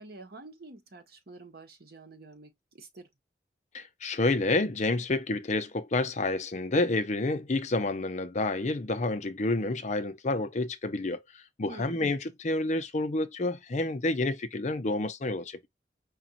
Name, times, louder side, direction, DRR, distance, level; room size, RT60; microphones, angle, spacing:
voice 1, 0.0-3.1 11.7-12.0, right 2 dB, 60° right, 0.9 m, -48 dB
voice 2, 3.7-15.7, left 2 dB, 40° left, 0.6 m, -29 dB
5.0 x 2.3 x 2.8 m
head